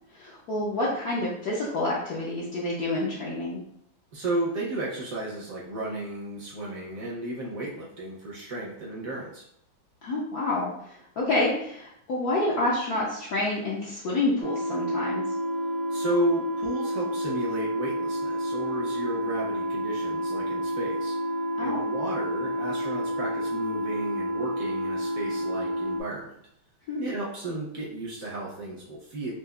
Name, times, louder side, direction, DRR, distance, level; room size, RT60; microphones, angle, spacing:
voice 1, 0.1-3.6 10.0-15.2 21.6-21.8 26.9-27.1, left 2 dB, 65° left, -6 dB, 1.0 m, -28 dB
voice 2, 4.1-9.4 15.9-21.2 21.6-26.3 27.0-29.3, right 1 dB, 60° right, -4 dB, 1.0 m, -33 dB
sound 1, 14.4-26.0, equal, 75° right, 1.4 m, -29 dB
4.6 x 2.4 x 2.3 m, 0.71 s
omnidirectional pair, 2.2 m